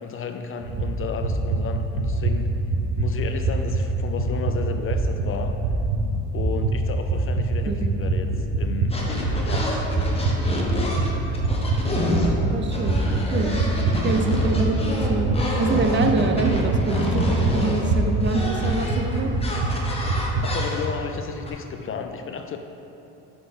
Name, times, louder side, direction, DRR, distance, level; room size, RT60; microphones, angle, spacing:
voice 1, 0.0-2.5 3.0-5.5 6.3-8.3 8.5-9.8 15.8-16.0 20.4-22.6, left 6 dB, 40° left, 6 dB, 0.4 m, -33 dB
sound 1, 0.6-20.5, right 2 dB, 80° right, 1.0 m, -25 dB
sound 2, 8.9-12.3 12.6-21.1 21.5-21.6, left 1 dB, 15° left, 1.0 m, -28 dB
voice 2, 12.5-13.0 13.3-13.5 14.0-15.3 15.6-19.3, right 3 dB, 30° right, 4 dB, 0.6 m, -25 dB
5.5 x 4.3 x 5.1 m, 2.9 s
cardioid pair, 100°, 36 cm